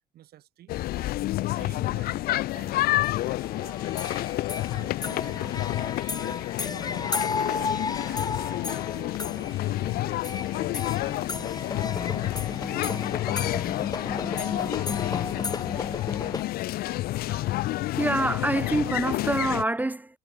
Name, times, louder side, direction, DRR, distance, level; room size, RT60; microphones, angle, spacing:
voice 1, 0.1-0.8 1.4-4.0 4.6-7.2 7.5-13.3 13.7-16.0, right 13 dB, 65° right, 5.7 m, -49 dB
sound 1, 0.7-19.6, left 16 dB, 65° left, 0.4 m, -29 dB
sound 2, 3.0-16.4, left 4 dB, 25° left, 1.3 m, -34 dB
voice 2, 17.3-20.2, right 2 dB, 10° right, 0.6 m, -27 dB
cardioid pair, 110°, 17 cm